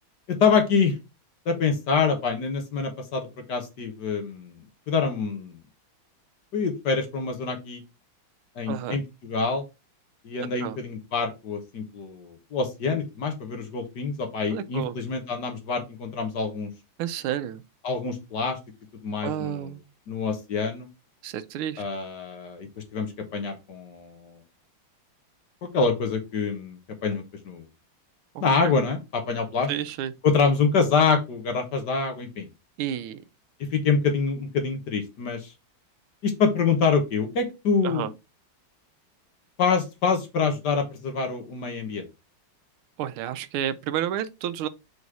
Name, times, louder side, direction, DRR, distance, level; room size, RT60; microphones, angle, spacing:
voice 1, 0.3-0.9 1.4-5.6 6.5-7.8 8.6-9.6 10.2-16.7 17.8-18.6 19.0-19.7 20.1-20.9 21.8-24.4 25.6-27.7 28.4-29.7 30.2-32.5 33.6-35.5 36.2-38.1 39.6-42.0, left 5 dB, 55° left, 1.6 m, -26 dB
voice 2, 8.7-9.0 10.6-10.8 14.5-15.0 17.0-17.6 19.2-19.8 21.2-21.8 28.3-28.7 29.7-30.1 32.8-33.2 37.8-38.1 43.0-44.7, right 11 dB, 90° right, 1.5 m, -30 dB
4.9 x 4.1 x 4.7 m
omnidirectional pair, 2.3 m